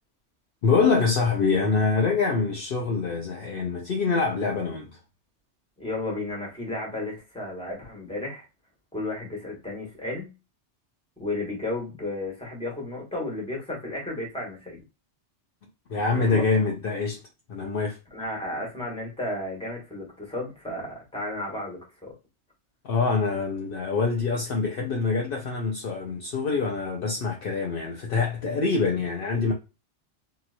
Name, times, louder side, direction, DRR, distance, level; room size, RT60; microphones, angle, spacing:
voice 1, 0.6-4.9 15.9-17.2 17.5-18.0 22.8-29.5, left 4 dB, 60° left, 0.7 m, -25 dB
voice 2, 5.8-8.4 8.9-10.3 11.2-14.8 16.3-16.5 18.1-22.1, left 2 dB, 5° left, 1.3 m, -33 dB
2.9 x 2.9 x 2.5 m
omnidirectional pair, 1.2 m